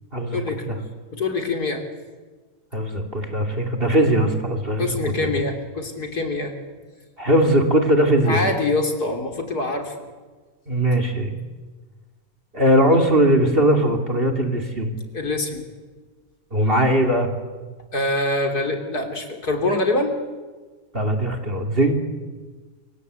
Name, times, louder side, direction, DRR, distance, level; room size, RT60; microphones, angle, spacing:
voice 1, 0.3-0.7 1.1-1.8 4.8-6.5 8.3-10.0 15.1-15.7 17.9-20.2, left 2 dB, 60° left, 5 dB, 3.8 m, -24 dB
voice 2, 2.7-5.0 7.2-8.4 10.7-11.3 12.5-14.9 16.5-17.3 20.9-21.9, right 1 dB, 30° right, 3 dB, 3.0 m, -19 dB
27.5 x 25.0 x 8.3 m, 1.4 s
omnidirectional pair, 1.8 m